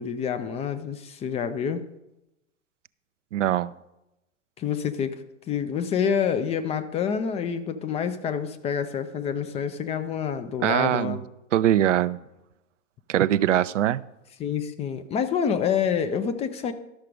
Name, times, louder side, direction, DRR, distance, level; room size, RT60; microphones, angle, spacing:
voice 1, 0.0-1.8 4.6-11.2 14.4-16.7, left 7 dB, 15° left, 9 dB, 0.4 m, -27 dB
voice 2, 3.3-3.7 10.6-11.2 11.5-12.2 13.1-14.0, right 12 dB, 70° right, 16 dB, 0.5 m, -22 dB
12.5 x 6.5 x 5.0 m, 0.91 s
figure-of-eight pair, 95°, 38 cm